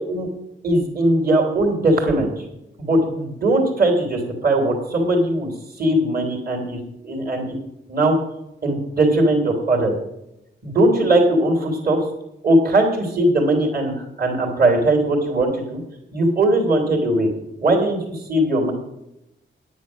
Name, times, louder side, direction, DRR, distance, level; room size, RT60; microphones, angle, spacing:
voice 1, 0.6-2.4 2.8-5.5 5.8-7.5 7.9-8.1 8.6-9.9 10.6-12.0 12.4-15.8 16.1-17.3 17.6-18.7, right 1 dB, 45° right, 1 dB, 3.0 m, -19 dB
9.6 x 9.5 x 6.2 m, 0.87 s
wide cardioid pair, 125°, 21 cm